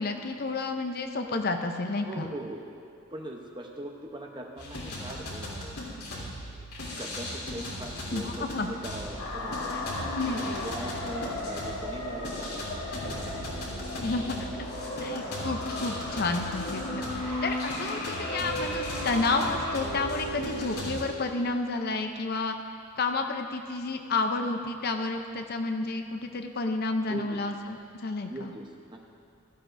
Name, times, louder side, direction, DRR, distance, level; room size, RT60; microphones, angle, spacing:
voice 1, 0.0-2.3 8.1-8.7 9.7-9.8 10.2-10.6 14.0-14.5 15.0-22.6 23.0-28.5, left 3 dB, 45° left, 5 dB, 0.6 m, -31 dB
voice 2, 1.9-2.6 3.1-5.8 6.1-6.7 6.9-9.7 10.1-14.1 14.9-15.2 17.0-17.2 27.0-27.4 28.2-29.1, right 1 dB, 20° right, 1 dB, 0.8 m, -41 dB
sound 1, 4.6-21.0, left 1 dB, 85° left, 3.1 m, -35 dB
sound 2, 9.2-14.2, left 2 dB, 65° left, 1.4 m, -37 dB
16.5 x 13.5 x 2.6 m, 2.5 s
head